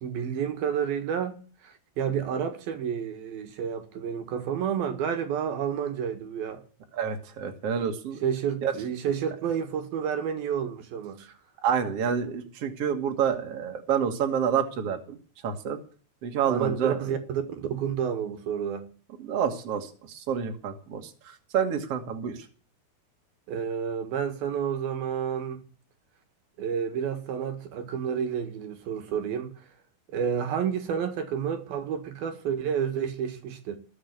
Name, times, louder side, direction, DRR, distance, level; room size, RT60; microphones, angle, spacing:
voice 1, 0.0-6.6 8.2-11.2 16.5-18.9 23.5-25.6 26.6-29.7 30.1-33.8, right 8 dB, 70° right, 3.4 m, -30 dB
voice 2, 6.9-8.2 8.6-8.7 11.2-11.3 11.6-15.2 15.4-15.8 16.2-17.0 19.2-22.5, right 7 dB, 45° right, 2.8 m, -28 dB
20.5 x 7.9 x 8.3 m
omnidirectional pair, 4.5 m